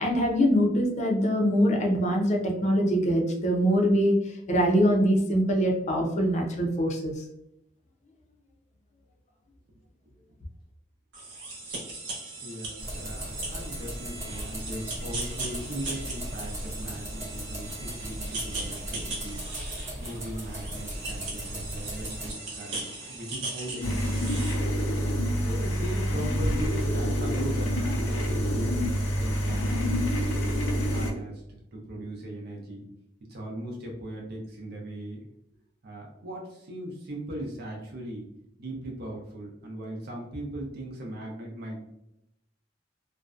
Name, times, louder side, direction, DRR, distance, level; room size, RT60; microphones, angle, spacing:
voice 1, 0.0-7.1, equal, 40° left, 1 dB, 0.5 m, -23 dB
sound 1, 11.1-24.6, right 2 dB, 70° right, 0.9 m, -38 dB
voice 2, 12.4-19.4 20.0-24.7 25.4-30.4 30.9-32.9 33.3-35.3 35.8-38.3 38.6-41.9, right 1 dB, 55° right, -1 dB, 0.6 m, -38 dB
sound 2, 12.8-22.3, equal, 15° right, 0.6 m, -37 dB
sound 3, 23.8-31.1, equal, 85° left, 0.5 m, -27 dB
2.5 x 2.1 x 2.4 m, 0.80 s
head